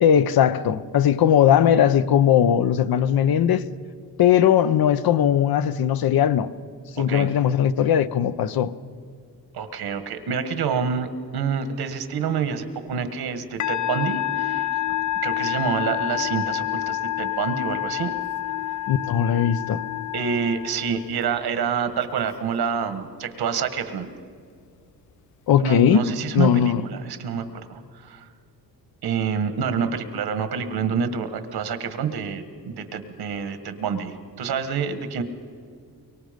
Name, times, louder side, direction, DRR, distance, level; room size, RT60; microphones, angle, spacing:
voice 1, 0.0-3.6 4.2-6.5 7.0-8.7 18.9-19.8 25.5-26.0 26.3-26.8, left 9 dB, 70° left, 0.8 m, -19 dB
voice 2, 7.0-7.3 9.5-14.7 15.2-18.1 20.1-24.1 25.6-28.2 29.0-35.2, right 6 dB, 80° right, 1.6 m, -27 dB
Musical instrument, 13.6-21.2, left 13 dB, 55° left, 0.4 m, -28 dB
24.5 x 23.5 x 5.2 m
wide cardioid pair, 145°, 37 cm